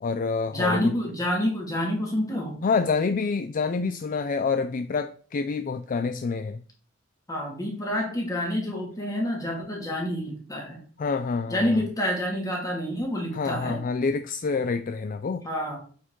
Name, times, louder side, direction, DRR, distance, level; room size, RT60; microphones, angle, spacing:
voice 1, 0.0-1.0 2.6-6.6 11.0-11.8 13.3-15.4, left 4 dB, 40° left, 0.4 m, -27 dB
voice 2, 0.5-2.6 7.3-10.8 11.5-13.8 15.4-15.8, left 1 dB, 15° left, 2.3 m, -28 dB
8.1 x 5.1 x 3.8 m
head